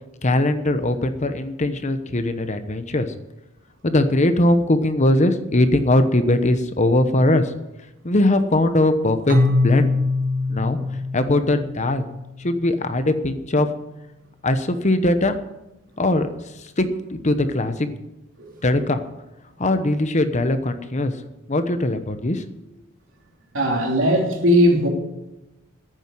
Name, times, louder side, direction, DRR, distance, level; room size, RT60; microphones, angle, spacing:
voice 1, 0.2-3.1 3.8-7.5 8.0-10.0 10.5-10.8 11.1-12.1 12.4-13.7 14.4-15.4 16.0-16.3 16.6-18.0 18.6-19.0 19.6-21.1 21.5-22.4, left 1 dB, 35° left, 9 dB, 1.0 m, -20 dB
Keyboard (musical), 9.3-13.0, left 2 dB, 45° right, 1.8 m, -23 dB
voice 2, 23.5-24.9, equal, 70° right, 0 dB, 3.1 m, -18 dB
10.5 x 9.1 x 9.6 m, 0.97 s
head